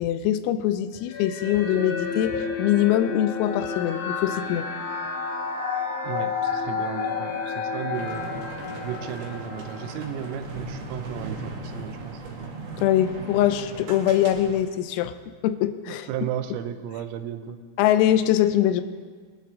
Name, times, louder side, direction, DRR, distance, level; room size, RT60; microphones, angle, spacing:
voice 1, 0.0-4.7 12.8-15.1 15.4-16.1 17.8-18.8, left 11 dB, 90° left, 11 dB, 3.4 m, -23 dB
sound 1, 1.1-10.6, left 5 dB, 70° left, 2.9 m, -31 dB
voice 2, 6.0-8.4 8.8-12.2 15.9-17.6, right 9 dB, 90° right, 9 dB, 3.5 m, -34 dB
sound 2, 7.9-14.6, right 3 dB, 60° right, 3.4 m, -37 dB
22.0 x 12.0 x 3.7 m, 1.5 s
omnidirectional pair, 5.9 m